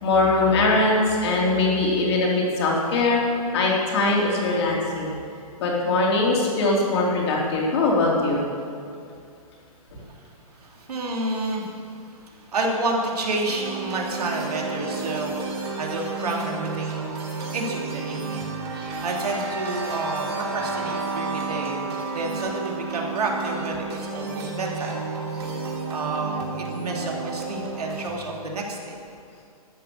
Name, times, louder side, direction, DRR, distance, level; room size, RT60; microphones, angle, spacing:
voice 1, 0.0-3.2 3.5-5.1 5.6-8.4, left 2 dB, 45° left, -3 dB, 3.1 m, -21 dB
voice 2, 10.5-17.2 17.5-18.5 18.7-24.9 25.3-29.0, right 2 dB, 90° right, -1 dB, 2.8 m, -30 dB
sound 1, 13.5-28.1, right 3 dB, 40° right, 2.6 m, -31 dB
13.0 x 8.4 x 6.6 m, 2.4 s
hypercardioid pair, 165°, 19 cm